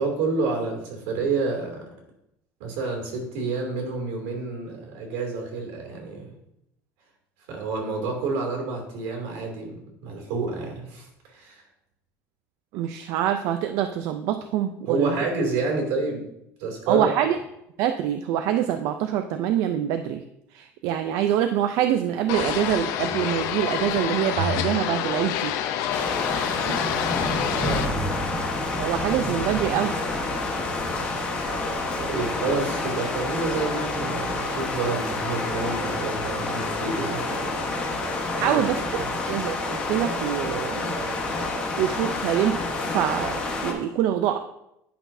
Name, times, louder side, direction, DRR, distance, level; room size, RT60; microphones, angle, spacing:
voice 1, 0.0-1.8 2.6-6.3 7.5-11.6 14.9-16.2 16.6-17.1 27.5-28.0 32.0-37.9 38.3-38.6 39.0-39.1, right 3 dB, 80° right, 1 dB, 2.6 m, -29 dB
voice 2, 12.7-15.2 16.9-17.4 17.8-20.2 20.5-25.5 28.8-29.9 38.3-40.9 41.8-42.6 42.8-44.4, right 10 dB, 60° right, 7 dB, 0.4 m, -25 dB
sound 1, 22.3-27.9, left 10 dB, 65° left, 0.6 m, -28 dB
sound 2, 22.9-23.8 24.3-27.4 27.8-28.3 28.6-28.7, equal, 40° right, 1.8 m, -35 dB
sound 3, 25.9-43.7, left 2 dB, 20° left, 1.1 m, -28 dB
10.5 x 5.9 x 2.7 m, 0.82 s
cardioid pair, 170°, 6 cm